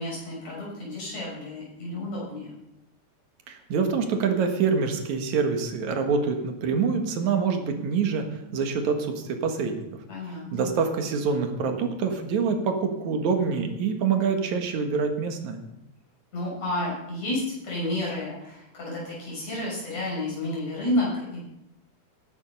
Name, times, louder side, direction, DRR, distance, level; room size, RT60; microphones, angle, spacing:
voice 1, 0.0-2.5 10.1-10.7 16.3-21.4, left 1 dB, 60° left, -5 dB, 7.9 m, -31 dB
voice 2, 3.5-8.2 8.5-9.9 10.5-15.6, right 5 dB, 75° right, 5 dB, 3.0 m, -26 dB
16.0 x 11.0 x 5.4 m, 0.89 s
omnidirectional pair, 3.4 m